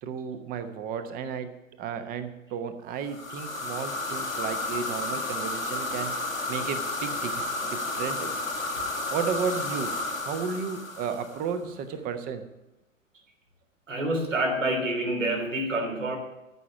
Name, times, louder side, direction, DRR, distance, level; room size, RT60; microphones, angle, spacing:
voice 1, 0.0-8.5 9.1-10.0 10.2-12.4, right 6 dB, 20° right, 10 dB, 1.1 m, -33 dB
sound 1, 3.1-11.6, left 2 dB, 85° left, 1.9 m, -32 dB
voice 2, 13.9-16.2, right 1 dB, 70° right, 2 dB, 3.6 m, -27 dB
14.0 x 6.2 x 9.4 m, 0.97 s
figure-of-eight pair, 110°, 39 cm